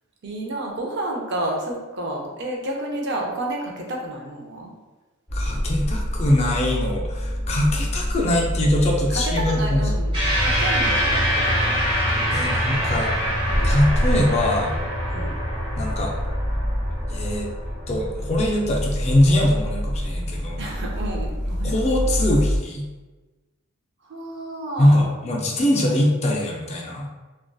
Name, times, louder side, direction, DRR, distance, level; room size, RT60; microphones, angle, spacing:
voice 1, 0.2-4.7 9.1-11.8 15.1-15.4 20.6-22.2 24.1-25.1, right 1 dB, 55° right, 0 dB, 0.5 m, -31 dB
voice 2, 5.3-9.9 12.3-13.1 13.6-14.7 15.8-16.1 17.1-17.5 17.9-20.7 21.6-22.9 24.8-27.1, left 1 dB, 30° left, 0 dB, 0.3 m, -22 dB
sound 1, 5.3-22.6, equal, 5° left, 0.7 m, -27 dB
sound 2, 10.1-18.8, equal, 25° right, 0.7 m, -25 dB
2.5 x 2.2 x 2.2 m, 1.2 s
head